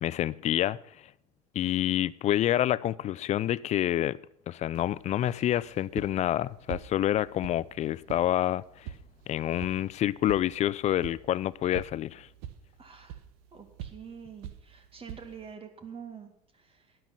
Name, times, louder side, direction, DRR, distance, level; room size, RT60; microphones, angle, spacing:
voice 1, 0.0-1.1 1.5-4.2 4.5-8.9 9.3-12.3, left 12 dB, 35° left, 21 dB, 0.5 m, -28 dB
sound 1, 4.7-15.5, right 10 dB, 65° right, 1.1 m, -46 dB
voice 2, 12.8-13.2 13.5-17.0, right 6 dB, 30° right, 6 dB, 2.2 m, -46 dB
12.0 x 9.4 x 6.0 m, 0.71 s
hypercardioid pair, 80°, 20 cm